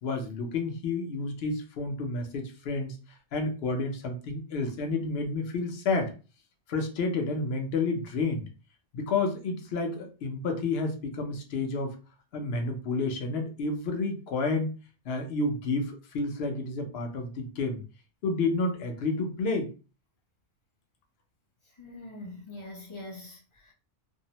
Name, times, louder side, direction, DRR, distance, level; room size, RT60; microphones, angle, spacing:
voice 1, 0.0-3.0 3.3-6.1 6.7-8.4 8.9-12.0 12.3-14.7 15.0-17.8 18.2-19.7, left 3 dB, 65° left, 0.8 m, -30 dB
voice 2, 21.8-23.7, left 2 dB, 35° left, 0.5 m, -43 dB
2.6 x 2.0 x 2.8 m
omnidirectional pair, 1.2 m